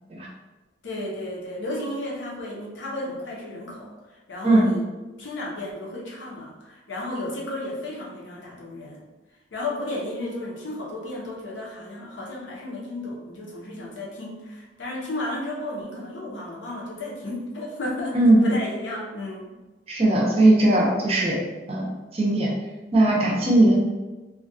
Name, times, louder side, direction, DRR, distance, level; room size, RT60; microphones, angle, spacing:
voice 1, 0.8-4.8 5.2-9.0 9.5-19.5, left 1 dB, 75° left, -4 dB, 0.7 m, -33 dB
voice 2, 18.1-18.5 19.9-21.4 21.7-22.5 22.9-23.8, right 1 dB, 30° right, -2 dB, 0.4 m, -19 dB
2.4 x 2.2 x 2.6 m, 1.2 s
head